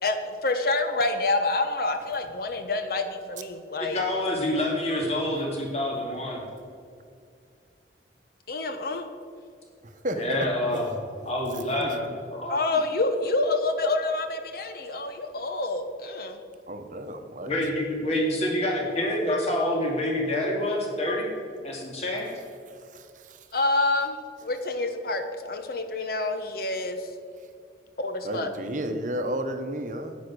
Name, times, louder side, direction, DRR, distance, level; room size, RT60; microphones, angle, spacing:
voice 1, 0.0-4.0 8.5-9.0 12.5-16.4 23.5-27.1 28.0-28.5, left 2 dB, 55° left, 7 dB, 1.0 m, -27 dB
voice 2, 3.8-6.4 10.1-10.9 11.2-12.5 17.5-21.3 21.6-22.3, left 1 dB, 35° left, -1 dB, 2.5 m, -27 dB
voice 3, 16.7-17.5 22.9-23.0 28.2-30.2, right 1 dB, 45° right, 7 dB, 0.9 m, -32 dB
10.0 x 9.3 x 6.2 m, 2.3 s
head